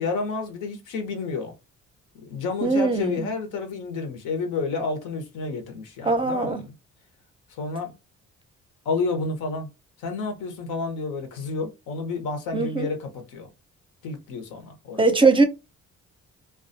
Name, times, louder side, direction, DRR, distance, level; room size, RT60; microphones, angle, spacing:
voice 1, 0.0-1.5 2.1-6.7 7.5-7.9 8.8-9.7 10.0-13.5 14.0-15.1, left 4 dB, 85° left, 0.8 m, -30 dB
voice 2, 2.6-3.3 6.1-6.6 12.5-12.9 15.0-15.4, right 3 dB, 15° right, 0.5 m, -20 dB
2.3 x 2.2 x 2.6 m
cardioid pair, 90°, 30 cm